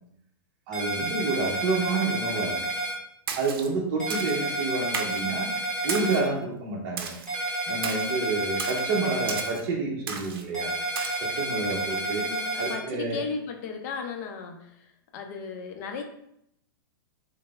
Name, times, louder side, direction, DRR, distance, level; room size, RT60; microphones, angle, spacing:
sound 1, 0.7-2.9 4.0-6.2 7.3-9.5 10.5-12.7, right 1 dB, 5° left, 0.9 m, -30 dB
voice 1, 0.7-2.6 3.4-5.5 5.8-7.1 7.7-10.7 11.2-12.2 12.6-13.2, right 3 dB, 40° right, -2 dB, 0.7 m, -29 dB
Splash splatter, 3.3-3.7 4.1-4.4 4.9-5.3 5.9-6.3 7.0-7.3 7.8-8.1 8.6-8.8 9.3-9.6 10.1-10.4 10.9-11.2, right 6 dB, 85° right, 0.5 m, -34 dB
voice 2, 11.9-16.0, left 5 dB, 45° left, 4 dB, 0.5 m, -36 dB
3.1 x 2.0 x 3.4 m, 0.75 s
supercardioid pair, 150°, 12 cm